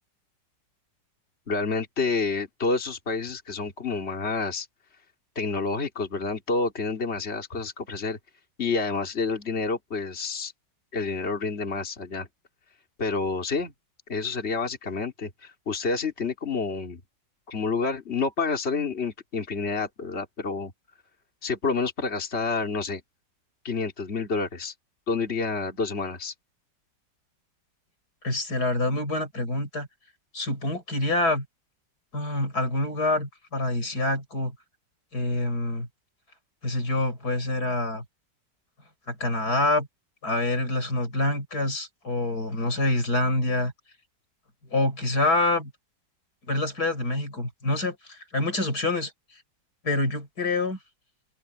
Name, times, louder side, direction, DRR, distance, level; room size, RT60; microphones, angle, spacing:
voice 1, 1.5-4.7 5.3-8.2 8.6-10.5 10.9-12.3 13.0-13.7 14.1-17.0 17.5-20.7 21.4-23.0 23.6-24.7 25.1-26.3, left 4 dB, 35° left, 3.0 m, -29 dB
voice 2, 28.2-29.9 30.3-31.4 32.1-34.5 35.1-35.9 36.6-38.0 39.1-39.9 40.2-43.7 44.7-45.7 46.5-49.1 49.8-50.8, left 2 dB, 60° left, 6.4 m, -26 dB
open air
omnidirectional pair, 1.9 m